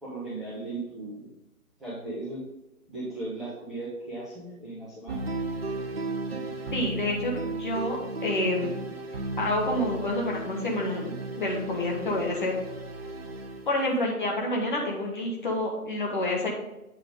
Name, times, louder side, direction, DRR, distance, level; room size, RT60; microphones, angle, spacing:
voice 1, 0.0-1.3 1.8-2.4 2.9-5.2, right 2 dB, ahead, -12 dB, 1.4 m, -37 dB
sound 1, 5.1-13.8, right 2 dB, 40° right, 1.1 m, -35 dB
voice 2, 6.7-8.7 9.4-12.5 13.6-16.5, left 1 dB, 35° left, -1 dB, 1.5 m, -28 dB
8.7 x 6.0 x 3.7 m, 0.93 s
figure-of-eight pair, 145°, 44 cm